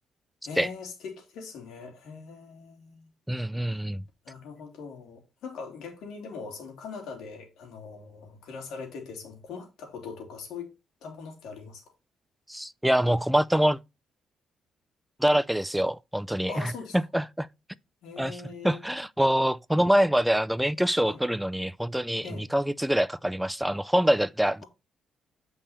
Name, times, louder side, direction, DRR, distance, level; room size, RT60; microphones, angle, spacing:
voice 1, 0.4-3.1 3.7-3.8 4.2-10.7 11.0-11.8 15.3-15.4 16.5-17.0 18.0-18.8 21.0-21.2 22.2-22.5, left 5 dB, 80° left, 3.3 m, -41 dB
voice 2, 3.3-4.0 12.5-13.8 15.2-16.5 16.9-17.5 18.2-24.6, equal, 5° right, 0.4 m, -25 dB
8.4 x 5.5 x 4.3 m
cardioid pair, 90°, 0 cm